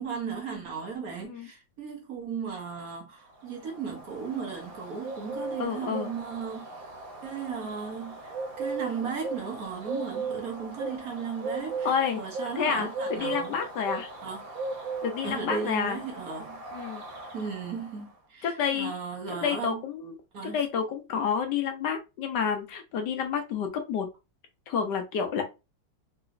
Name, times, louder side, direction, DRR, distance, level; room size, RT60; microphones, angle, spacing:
voice 1, 0.0-6.7 7.2-13.6 14.2-14.5 15.2-16.6 17.3-19.8 20.3-20.6, right 6 dB, 60° right, 1.1 m, -36 dB
Bird, 3.4-18.1, right 3 dB, 85° right, 1.7 m, -38 dB
voice 2, 5.6-6.1 11.8-12.2 12.6-14.1 15.0-16.0 16.7-17.0 18.4-18.9 19.4-20.2 20.4-24.1 24.7-25.4, left 7 dB, 70° left, 1.3 m, -29 dB
3.8 x 3.0 x 2.5 m
omnidirectional pair, 2.1 m